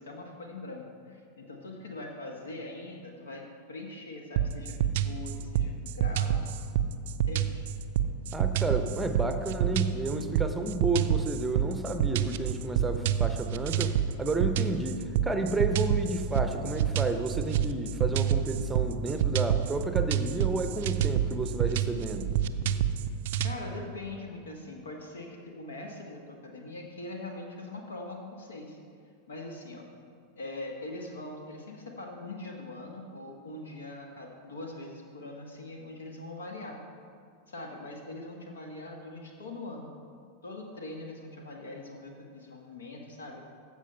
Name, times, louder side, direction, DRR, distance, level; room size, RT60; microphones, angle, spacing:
voice 1, 0.0-6.6 7.1-7.6 23.4-28.8 29.3-29.9 30.4-36.8 37.5-39.9 40.4-43.4, left 2 dB, 65° left, 2 dB, 1.2 m, -42 dB
sound 1, 4.4-23.5, right 9 dB, 55° right, 0.4 m, -28 dB
voice 2, 8.3-22.3, right 2 dB, 10° right, 7 dB, 0.8 m, -31 dB
15.0 x 5.0 x 5.5 m, 2.3 s
figure-of-eight pair, 90°, 0 cm